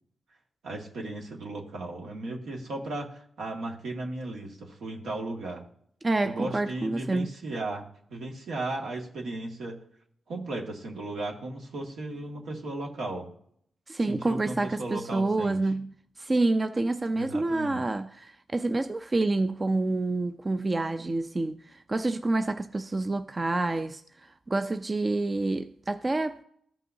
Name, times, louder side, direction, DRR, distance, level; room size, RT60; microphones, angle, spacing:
voice 1, 0.6-5.6 6.2-7.9 8.1-9.8 10.3-13.3 14.1-15.6 17.1-17.8, right 2 dB, 80° right, 1.8 m, -35 dB
voice 2, 6.0-7.3 13.9-26.4, right 2 dB, 30° right, 0.4 m, -28 dB
14.0 x 5.6 x 2.7 m
cardioid pair, 70°, 0 cm